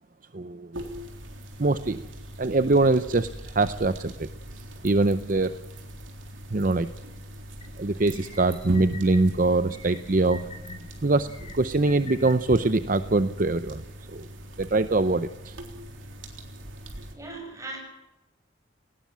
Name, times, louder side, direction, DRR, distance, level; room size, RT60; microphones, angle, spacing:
voice 1, 0.3-0.7 1.6-2.1 2.4-4.3 4.8-5.6 6.5-6.9 7.8-10.4 11.0-11.3 11.5-13.8 14.1-14.3 14.6-15.5, right 2 dB, 45° right, 12 dB, 0.7 m, -23 dB
sound 1, 0.7-17.2, right 1 dB, 85° right, 3.6 m, -42 dB
sound 2, 7.6-7.7 8.1-9.2 9.7-10.8 11.3-12.3, left 2 dB, 30° left, 4.9 m, -42 dB
voice 2, 17.1-17.8, right 2 dB, 15° right, 1 dB, 7.2 m, -38 dB
19.5 x 18.0 x 7.5 m, 0.95 s
head